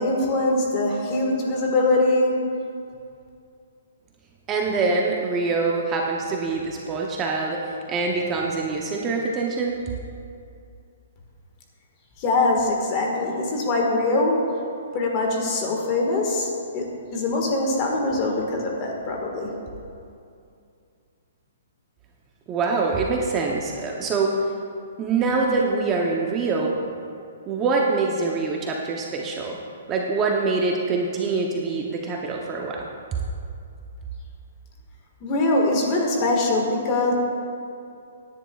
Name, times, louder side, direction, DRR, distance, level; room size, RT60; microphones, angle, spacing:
voice 1, 0.0-2.4 12.2-14.4 14.9-19.5 35.2-37.1, left 2 dB, 25° left, 0 dB, 1.6 m, -23 dB
voice 2, 4.5-7.6 7.9-9.8 22.5-24.4 25.0-26.7 27.5-29.6 29.9-32.9, right 4 dB, 15° right, -1 dB, 0.7 m, -24 dB
17.5 x 10.5 x 2.3 m, 2.5 s
hypercardioid pair, 165°, 0 cm